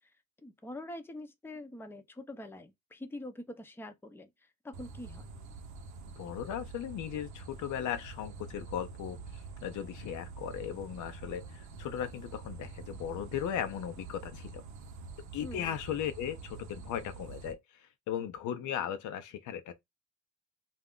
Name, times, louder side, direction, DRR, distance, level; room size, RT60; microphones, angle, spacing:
voice 1, 0.4-5.2 15.4-15.8, left 1 dB, 5° left, 0.5 m, -45 dB
sound 1, 4.7-17.5, right 4 dB, 75° right, 0.7 m, -46 dB
voice 2, 6.2-14.6 15.3-19.7, left 9 dB, 75° left, 0.5 m, -37 dB
2.3 x 2.1 x 3.6 m
cardioid pair, 90°, 30 cm